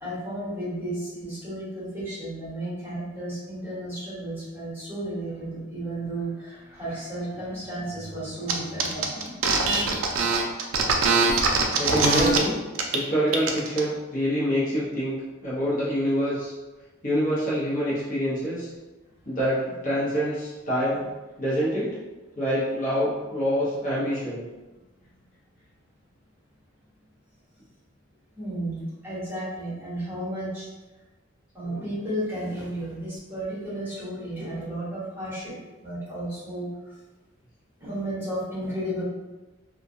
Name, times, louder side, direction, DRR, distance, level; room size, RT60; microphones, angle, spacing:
voice 1, 0.0-9.3 28.3-30.7 31.5-35.5 35.8-36.7 37.8-39.0, right 1 dB, 10° right, -11 dB, 1.1 m, -33 dB
sound 1, 8.5-8.6 8.8-12.4 12.7-13.0 13.3-13.8, right 4 dB, 70° right, 0.3 m, -22 dB
voice 2, 11.8-12.6 12.9-16.5 17.0-18.7 19.2-21.0 21.4-21.9 22.4-24.4, equal, 40° left, -9 dB, 0.8 m, -26 dB
2.2 x 2.2 x 2.6 m, 1.2 s
head